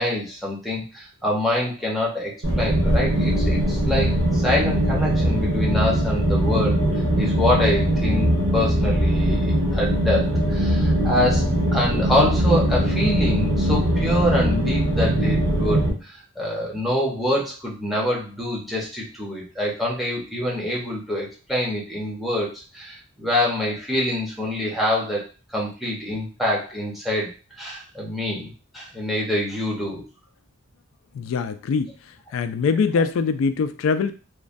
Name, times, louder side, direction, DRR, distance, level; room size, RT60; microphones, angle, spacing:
voice 1, 0.0-25.2 25.5-27.3 27.6-30.0, left 1 dB, ahead, -4 dB, 0.7 m, -25 dB
sound 1, 2.4-15.9, right 1 dB, 80° right, 1.3 m, -21 dB
voice 2, 31.1-34.1, left 5 dB, 70° left, 10 dB, 0.3 m, -23 dB
3.1 x 2.2 x 2.5 m, 0.35 s
head